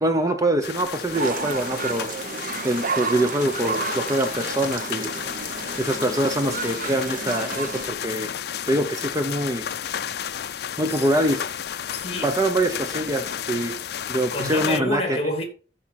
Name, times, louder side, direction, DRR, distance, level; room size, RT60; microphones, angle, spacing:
voice 1, 0.0-2.1 2.6-5.1 5.8-8.3 8.7-9.7 10.8-11.4 12.2-13.8 14.1-15.2, right 1 dB, 20° right, 0.8 m, -24 dB
sound 1, 0.6-14.8, left 9 dB, 60° left, 0.4 m, -32 dB
sound 2, 1.1-7.9, right 4 dB, 50° right, 0.9 m, -31 dB
voice 2, 11.9-12.3 14.3-15.4, left 2 dB, 35° left, 2.7 m, -28 dB
13.5 x 5.3 x 4.3 m
head